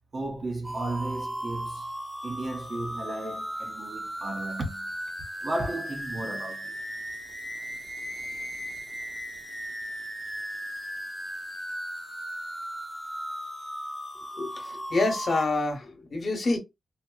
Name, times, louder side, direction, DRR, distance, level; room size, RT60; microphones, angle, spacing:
voice 1, 0.1-1.9 2.2-4.9 5.4-6.8, right 2 dB, 45° right, 0.9 m, -34 dB
sound 1, 0.6-15.4, equal, 15° right, 0.8 m, -37 dB
voice 2, 14.3-16.6, left 2 dB, 60° left, 1.0 m, -27 dB
4.1 x 2.0 x 2.3 m
wide cardioid pair, 115°, 0 cm